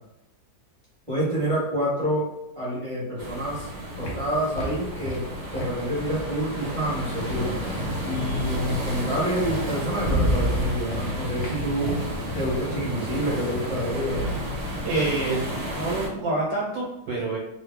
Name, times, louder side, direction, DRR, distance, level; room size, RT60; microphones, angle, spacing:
voice 1, 1.1-3.7 4.0-7.6 8.0-12.0 12.3-14.3, equal, 20° right, -9 dB, 1.2 m, -28 dB
sound 1, 3.2-16.1, equal, 65° right, 1.5 m, -32 dB
sound 2, 3.6-7.9 9.2-9.3 9.7-15.3, equal, 50° left, 0.8 m, -32 dB
voice 2, 14.8-17.4, right 2 dB, 80° right, -5 dB, 1.6 m, -27 dB
3.2 x 2.2 x 3.4 m, 0.87 s
omnidirectional pair, 2.0 m